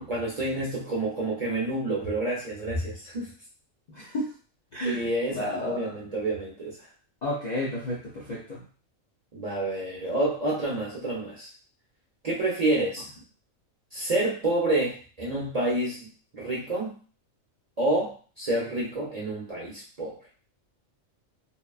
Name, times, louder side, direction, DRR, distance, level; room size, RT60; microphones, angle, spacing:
voice 1, 0.1-3.3 4.9-6.8 9.3-11.5 12.2-13.1 13.9-17.0 17.8-20.2, right 2 dB, 45° right, -6 dB, 0.5 m, -28 dB
voice 2, 3.9-4.3 4.7-5.0 5.3-5.9 7.2-8.6, left 1 dB, 55° left, -6 dB, 0.5 m, -31 dB
2.9 x 2.2 x 2.3 m, 0.39 s
omnidirectional pair, 1.4 m